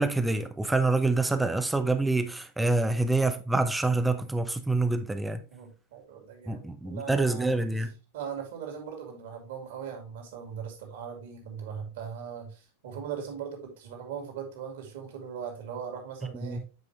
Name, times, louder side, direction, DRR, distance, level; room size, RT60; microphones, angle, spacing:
voice 1, 0.0-5.4 6.5-7.9 16.4-16.6, right 2 dB, 5° right, 0.7 m, -26 dB
voice 2, 5.5-7.5 8.1-16.6, right 7 dB, 55° right, 2.5 m, -39 dB
8.5 x 5.2 x 3.2 m
figure-of-eight pair, 90°, 0 cm